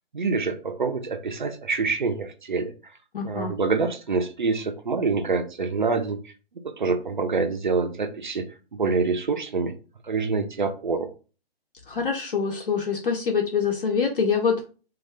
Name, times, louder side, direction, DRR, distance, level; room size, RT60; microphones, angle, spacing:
voice 1, 0.1-3.0 3.2-6.3 6.6-9.7 10.0-11.1, right 4 dB, 50° right, 0.4 m, -26 dB
voice 2, 3.1-3.6 11.9-14.7, left 6 dB, 60° left, 0.6 m, -25 dB
2.6 x 2.3 x 3.1 m
hypercardioid pair, 175°, 31 cm